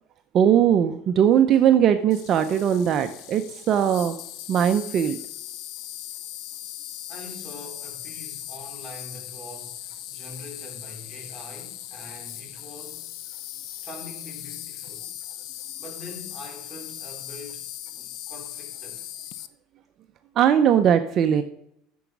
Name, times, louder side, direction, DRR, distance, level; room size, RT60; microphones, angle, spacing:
voice 1, 0.3-4.1 4.5-5.2 20.4-21.4, right 9 dB, 40° right, 0.6 m, -19 dB
Insect, 2.1-19.5, left 12 dB, 60° left, 0.6 m, -39 dB
voice 2, 7.1-13.2 13.7-15.1 15.8-19.1, left 1 dB, 5° left, 3.5 m, -44 dB
9.3 x 6.9 x 6.1 m
cardioid pair, 135°, 0 cm